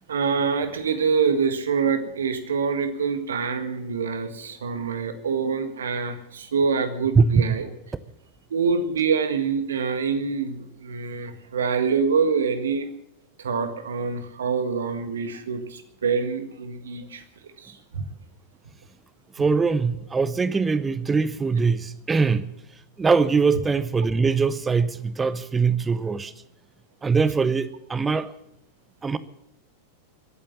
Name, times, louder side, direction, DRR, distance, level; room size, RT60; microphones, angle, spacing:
voice 1, 0.1-7.7 8.5-12.8 13.4-17.2 17.6-18.1, right 5 dB, 65° right, 1.7 m, -25 dB
voice 2, 7.2-7.6 19.3-22.5 23.0-26.3 27.0-28.3 29.0-29.2, right 4 dB, 15° right, 0.8 m, -22 dB
22.0 x 8.8 x 7.2 m
figure-of-eight pair, 90°, 0 cm